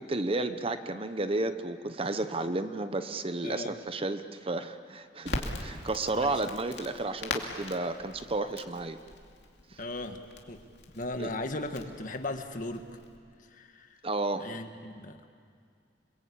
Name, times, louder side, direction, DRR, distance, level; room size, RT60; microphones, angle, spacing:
voice 1, 0.0-9.0 9.7-9.8 11.2-11.3 14.0-14.6, right 2 dB, 30° right, 10 dB, 0.9 m, -32 dB
voice 2, 3.4-3.8 6.0-6.3 9.8-10.6 10.9-12.8 13.5-14.0 14.4-15.2, left 2 dB, 45° left, 6 dB, 1.7 m, -37 dB
Crackle, 5.2-13.2, left 2 dB, 70° left, 2.6 m, -41 dB
29.0 x 22.0 x 8.6 m, 2.2 s
head